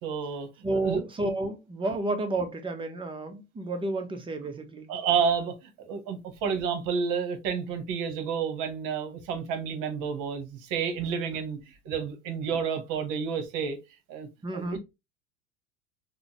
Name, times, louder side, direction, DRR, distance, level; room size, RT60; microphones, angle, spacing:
voice 1, 0.0-1.0 4.9-13.8 14.1-14.3 14.5-14.8, right 6 dB, 45° right, 0.9 m, -30 dB
voice 2, 0.6-4.9 14.4-14.8, right 2 dB, 10° right, 0.5 m, -31 dB
3.7 x 2.1 x 2.7 m
hypercardioid pair, 85°, 42 cm